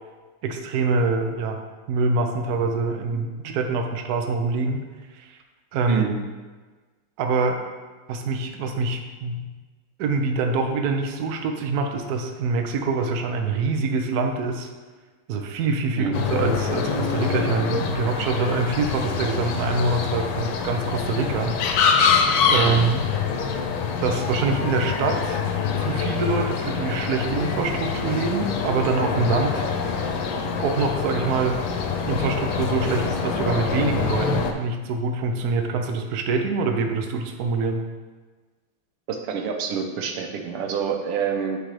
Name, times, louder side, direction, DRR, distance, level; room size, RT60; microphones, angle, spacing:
voice 1, 0.4-1.6 1.9-4.8 5.1-5.4 5.7-6.1 7.2-7.6 8.1-9.4 10.0-14.7 15.3-21.5 22.5-23.0 24.0-25.4 25.8-29.6 30.6-31.6 32.0-37.8, right 4 dB, 75° right, 4 dB, 0.9 m, -25 dB
sound 1, 16.1-34.5, left 6 dB, 80° left, 1.4 m, -25 dB
voice 2, 39.1-41.6, right 7 dB, 90° right, 3 dB, 1.7 m, -27 dB
9.5 x 3.8 x 3.2 m, 1.3 s
omnidirectional pair, 2.4 m